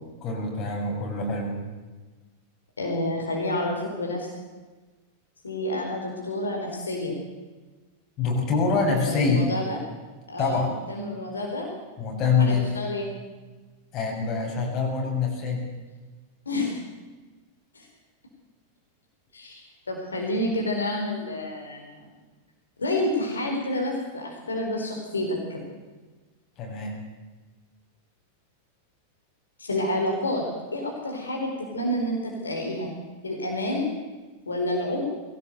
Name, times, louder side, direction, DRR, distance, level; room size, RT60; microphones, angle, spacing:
voice 1, 0.2-1.6 8.2-9.5 10.4-10.7 12.0-12.7 13.9-15.6 26.6-27.0, left 4 dB, 35° left, 0 dB, 7.2 m, -25 dB
voice 2, 2.8-4.3 5.4-7.1 9.0-9.8 10.3-10.6 10.9-11.7 12.4-13.1 16.5-16.8 17.7-17.9 19.3-22.1 22.8-25.7 29.6-30.5 30.7-32.9 33.2-33.9 34.5-35.1, left 1 dB, 75° left, 0 dB, 4.4 m, -29 dB
22.0 x 17.5 x 8.1 m, 1.3 s
figure-of-eight pair, 90°, 0 cm